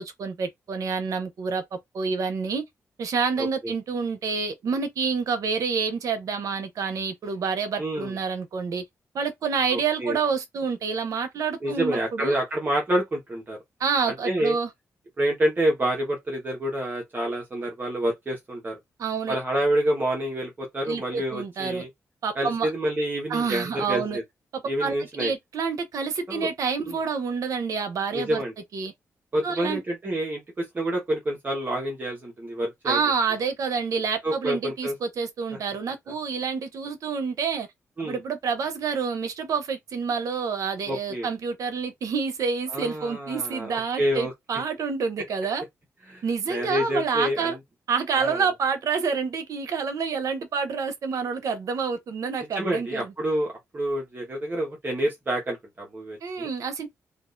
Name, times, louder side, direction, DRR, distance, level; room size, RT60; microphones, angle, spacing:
voice 1, 0.0-2.6 3.0-8.8 9.1-12.4 13.8-14.7 19.0-19.4 20.9-21.9 22.2-22.7 23.3-24.2 24.5-28.4 28.7-28.9 29.4-29.8 32.8-37.7 38.0-45.6 46.2-47.6 47.9-53.1 56.2-56.9, right 5 dB, 75° right, 0.7 m, -28 dB
voice 2, 7.8-8.1 9.7-10.2 11.6-13.6 14.2-14.5 15.2-18.8 19.3-21.9 22.3-24.2 24.7-25.3 26.3-26.5 26.9-27.0 28.1-28.5 29.3-33.0 34.2-34.9 38.0-38.2 40.9-41.3 42.7-44.3 46.1-46.2 46.5-47.6 48.2-48.4 52.5-56.5, right 1 dB, 35° right, 1.1 m, -28 dB
3.6 x 2.4 x 2.5 m
cardioid pair, 95°, 6 cm